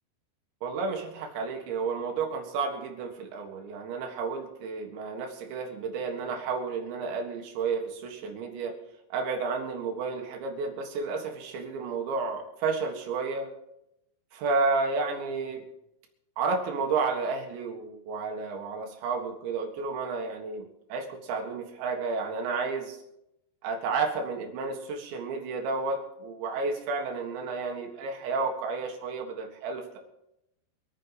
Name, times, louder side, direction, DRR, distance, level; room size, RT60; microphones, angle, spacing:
voice 1, 0.6-8.8 9.1-13.5 14.3-15.6 16.4-23.0 23.6-30.0, right 4 dB, 65° right, 3 dB, 3.6 m, -31 dB
25.5 x 8.8 x 4.1 m, 0.84 s
omnidirectional pair, 6.0 m